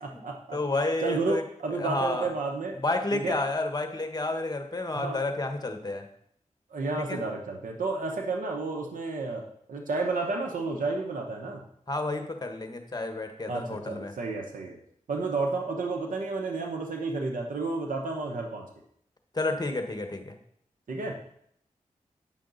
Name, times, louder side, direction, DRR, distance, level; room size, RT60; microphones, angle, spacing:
voice 1, 0.0-0.6 1.0-2.8 3.1-3.4 4.9-5.2 6.7-9.4 9.7-11.6 13.5-14.8 15.1-18.7 20.9-21.2, right 3 dB, 85° right, 2 dB, 0.9 m, -31 dB
voice 2, 0.5-1.4 1.7-2.3 2.8-6.1 7.1-7.2 11.9-14.1 19.3-20.3, left 2 dB, 30° left, 5 dB, 1.2 m, -30 dB
8.8 x 5.7 x 4.0 m, 0.69 s
cardioid pair, 50°, 13 cm